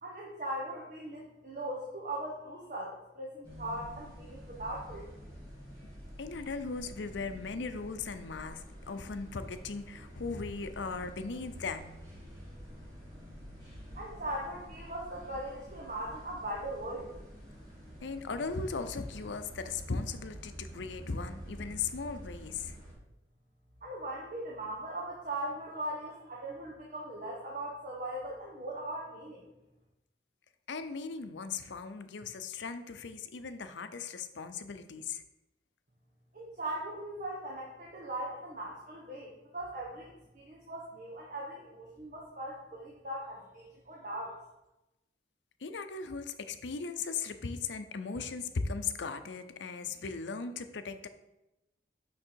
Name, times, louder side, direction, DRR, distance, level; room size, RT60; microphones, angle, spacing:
voice 1, 0.0-5.0 13.9-17.1 23.8-29.5 36.3-44.4, right 1 dB, 45° right, -3 dB, 1.1 m, -39 dB
sound 1, 3.4-22.9, equal, 25° right, 3.0 m, -48 dB
voice 2, 6.2-12.0 18.0-22.8 30.7-35.2 45.6-51.1, left 4 dB, 85° left, 9 dB, 0.6 m, -38 dB
6.2 x 5.9 x 4.5 m, 0.95 s
head